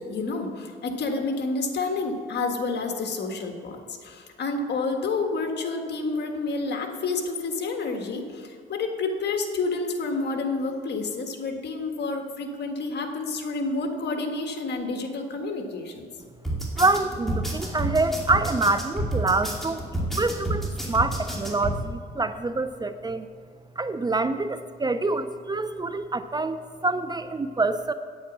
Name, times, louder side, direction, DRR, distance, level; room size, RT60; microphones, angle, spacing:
voice 1, 0.1-16.1, left 3 dB, 60° left, 4 dB, 1.6 m, -29 dB
sound 1, 16.4-21.8, right 1 dB, ahead, 2.5 m, -29 dB
voice 2, 16.8-19.8 20.2-23.3 23.8-27.9, right 3 dB, 20° right, 11 dB, 0.4 m, -26 dB
9.0 x 8.6 x 6.1 m, 2.2 s
cardioid pair, 90°, 20 cm